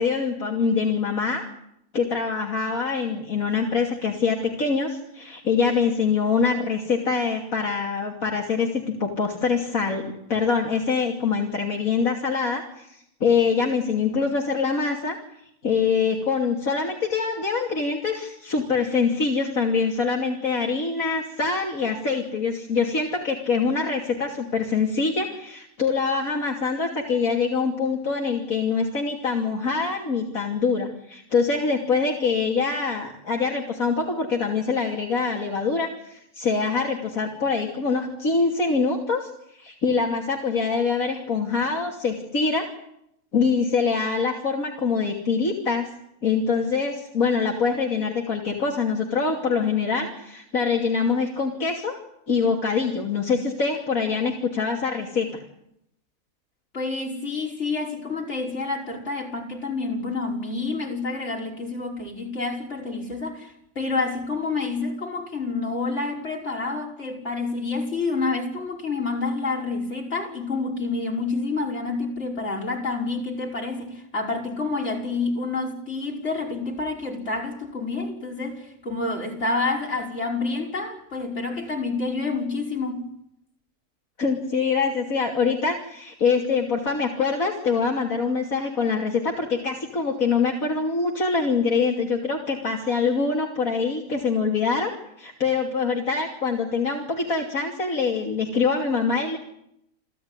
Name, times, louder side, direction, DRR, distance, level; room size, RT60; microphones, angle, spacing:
voice 1, 0.0-1.4 1.9-15.2 15.6-39.3 39.6-42.7 43.3-45.9 46.2-51.9 52.3-55.4 84.2-94.9 95.2-99.4, left 5 dB, 70° left, 3.3 m, -24 dB
voice 2, 56.7-83.1, left 3 dB, 50° left, 5.7 m, -28 dB
29.0 x 16.5 x 9.8 m
omnidirectional pair, 1.5 m